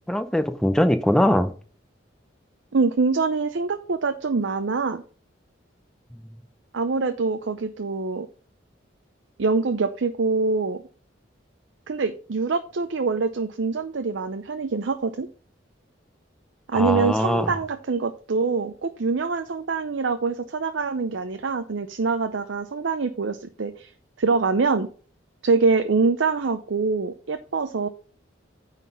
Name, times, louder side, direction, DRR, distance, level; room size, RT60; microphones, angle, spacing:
voice 1, 0.1-1.5 6.2-6.3 16.7-17.6, left 1 dB, 5° left, 9 dB, 0.6 m, -21 dB
voice 2, 2.7-5.0 6.7-8.3 9.4-10.8 11.9-15.3 16.7-23.9 24.2-24.9 25.4-27.9, right 4 dB, 75° right, 8 dB, 0.6 m, -24 dB
9.2 x 4.1 x 5.4 m, 0.41 s
head